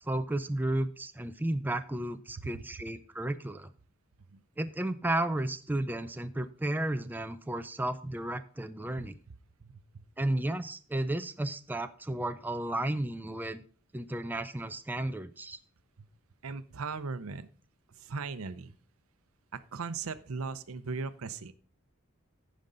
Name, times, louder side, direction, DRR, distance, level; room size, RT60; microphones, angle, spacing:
voice 1, 0.0-3.7 4.6-9.2 10.2-13.6 13.9-15.6, right 1 dB, 10° right, 9 dB, 0.5 m, -33 dB
voice 2, 9.6-10.0 16.0-16.1 16.4-17.5 18.0-18.7 19.7-21.5, right 4 dB, 80° right, 13 dB, 0.7 m, -38 dB
15.5 x 5.3 x 3.9 m, 0.43 s
head